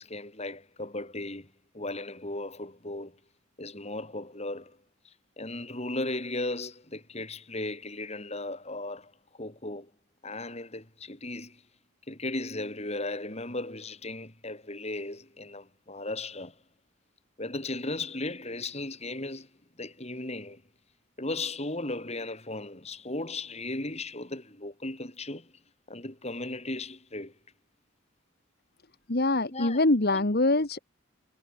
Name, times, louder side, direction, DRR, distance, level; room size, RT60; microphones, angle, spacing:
voice 1, 0.0-1.5 1.7-3.2 3.6-4.8 5.4-9.1 9.4-9.9 10.2-11.6 12.1-16.5 17.4-19.5 19.8-20.6 21.2-25.5 25.9-27.3 29.5-29.8 30.1-30.2, left 2 dB, 30° left, 3.9 m, -36 dB
voice 2, 29.1-30.8, left 2 dB, 50° left, 1.6 m, -24 dB
head